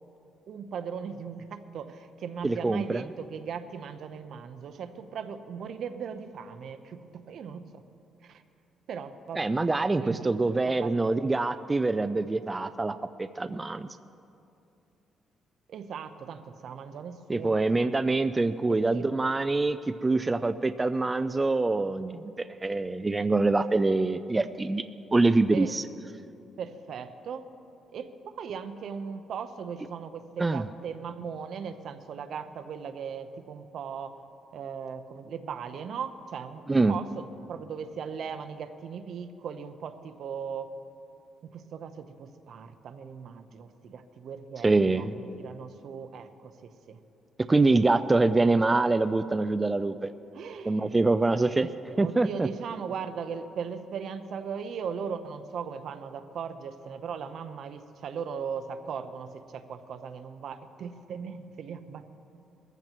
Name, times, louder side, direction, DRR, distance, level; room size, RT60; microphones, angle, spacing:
voice 1, 0.5-7.8 8.2-8.4 8.9-9.7 10.0-11.4 15.7-17.9 18.7-19.1 25.5-25.7 26.6-27.4 27.9-34.2 34.5-40.7 41.5-47.0 48.2-48.8 50.3-51.0 51.8-62.0, right 6 dB, 65° right, 9 dB, 0.8 m, -38 dB
voice 2, 2.4-3.0 9.4-13.9 17.3-24.8 25.1-25.8 30.4-30.6 36.7-37.0 44.6-45.1 47.5-50.1 50.7-51.7 52.0-52.5, right 3 dB, 20° right, 11 dB, 0.4 m, -25 dB
22.5 x 14.5 x 3.0 m, 2.7 s
cardioid pair, 90°, 0 cm